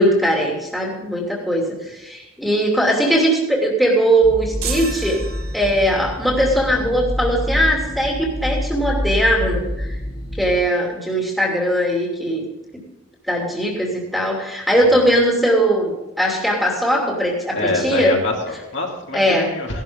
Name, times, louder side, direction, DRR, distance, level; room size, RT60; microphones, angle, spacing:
voice 1, 0.0-5.2 5.5-10.0 10.4-12.5 13.3-18.2 19.1-19.5, equal, ahead, -2 dB, 2.8 m, -19 dB
sound 1, 4.2-10.6, left 1 dB, 25° left, 2.5 m, -27 dB
sound 2, 4.6-6.1, right 7 dB, 75° right, 1.6 m, -32 dB
voice 2, 14.7-15.1 17.5-19.8, left 2 dB, 55° left, -1 dB, 2.7 m, -25 dB
17.0 x 12.0 x 3.8 m, 1.0 s
head